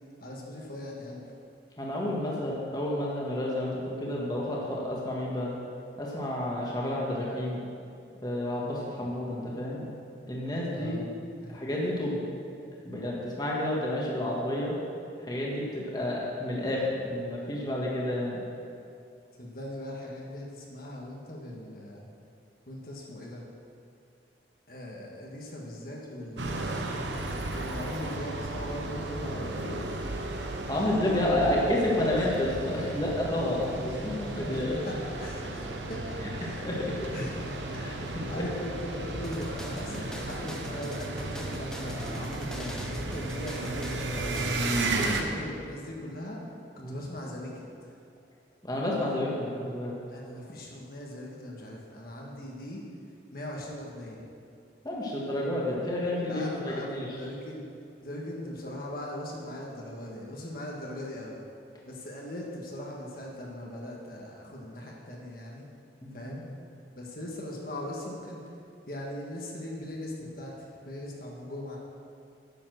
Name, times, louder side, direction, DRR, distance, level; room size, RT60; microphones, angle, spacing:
voice 1, 0.2-1.2 10.7-11.0 11.4-11.6 19.4-22.0 22.7-23.4 24.7-26.8 27.3-29.8 30.7-31.5 33.9-46.4 46.9-47.7 50.1-52.8 53.3-54.2 56.3-57.6 58.0-61.4 61.9-65.6 66.1-66.4 67.0-68.4 68.9-71.8, left 1 dB, 55° left, -2 dB, 1.5 m, -40 dB
voice 2, 1.8-5.5 6.0-7.6 8.2-9.8 10.3-11.0 11.5-12.2 12.8-14.7 15.2-18.4 30.7-34.8 36.6-37.1 37.8-37.9 38.3-38.4 39.9-40.1 46.8-47.0 48.6-49.9 54.8-57.2 66.0-66.3, left 1 dB, 20° left, -4 dB, 1.6 m, -30 dB
sound 1, 26.4-45.2, right 2 dB, 85° right, 1.0 m, -34 dB
sound 2, 39.2-44.9, equal, 5° left, 0.7 m, -43 dB
10.0 x 7.1 x 6.4 m, 2.5 s
head